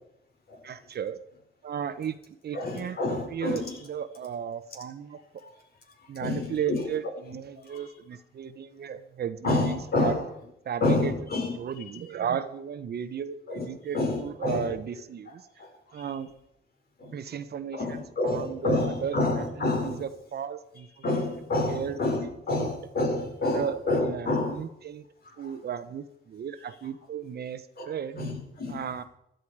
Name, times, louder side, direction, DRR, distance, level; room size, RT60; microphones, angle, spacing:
voice 1, 0.6-1.2 1.6-2.2 2.4-5.2 6.1-10.2 10.6-11.1 11.5-15.5 15.9-16.4 17.1-18.7 19.0-19.4 19.8-21.2 21.7-22.7 23.5-25.0 25.4-28.2 28.7-29.0, right 8 dB, 55° right, 1.1 m, -35 dB
voice 2, 2.5-3.8 5.4-5.5 6.2-6.9 7.7-7.8 9.4-10.2 10.8-11.5 13.5-13.7 13.9-14.7 15.6-15.7 16.0-16.1 17.0-17.1 17.7-20.0 21.0-24.6 25.2-25.5 27.8-27.9 28.2-28.9, left 2 dB, 50° left, 4.8 m, -28 dB
15.5 x 12.0 x 4.9 m
cardioid pair, 90°, 20 cm